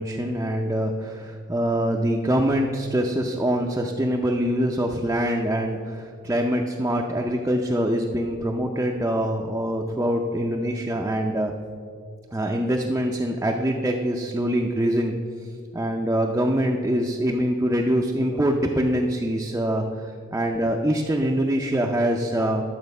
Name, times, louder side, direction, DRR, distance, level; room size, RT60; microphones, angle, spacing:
voice 1, 0.0-11.5 12.3-15.1 15.7-22.6, equal, 10° right, 0 dB, 0.5 m, -24 dB
11.0 x 7.1 x 5.3 m, 2.2 s
head